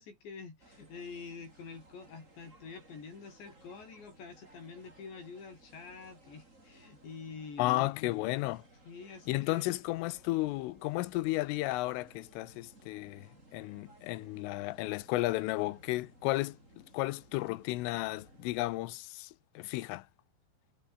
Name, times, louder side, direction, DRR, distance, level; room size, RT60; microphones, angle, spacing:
voice 1, 0.0-7.9 8.9-9.7, left 5 dB, 60° left, 8.5 m, -47 dB
sound 1, 0.6-18.8, right 2 dB, 15° right, 6.1 m, -60 dB
voice 2, 7.6-8.6 9.3-16.6 16.9-19.3 19.6-20.1, left 19 dB, 85° left, 3.4 m, -33 dB
omnidirectional pair, 5.7 m